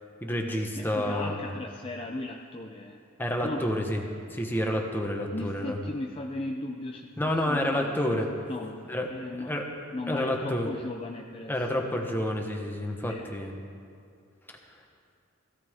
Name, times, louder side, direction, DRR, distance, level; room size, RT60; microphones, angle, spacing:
voice 1, 0.2-1.4 3.2-4.0 4.3-5.8 7.2-8.3 8.9-9.1 9.3-9.6 10.1-10.7 11.5-13.6, left 1 dB, 10° left, 1 dB, 1.3 m, -29 dB
voice 2, 0.7-3.0 3.4-3.7 5.3-8.2 8.5-9.5 9.9-12.0 13.1-13.3, left 2 dB, 30° left, 1 dB, 0.6 m, -37 dB
17.0 x 15.0 x 3.7 m, 2.3 s
head